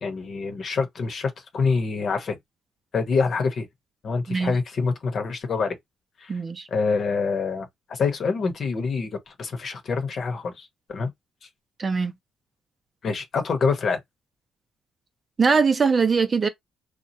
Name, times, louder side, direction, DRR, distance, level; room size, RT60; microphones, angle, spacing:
voice 1, 0.0-2.4 2.9-3.7 4.0-5.8 6.2-6.4 6.7-11.1 13.0-14.0, left 4 dB, 55° left, 1.0 m, -26 dB
voice 2, 6.3-6.7 11.8-12.1 15.4-16.5, right 5 dB, 35° right, 0.6 m, -21 dB
3.0 x 2.3 x 2.7 m
cardioid pair, 90°, 0 cm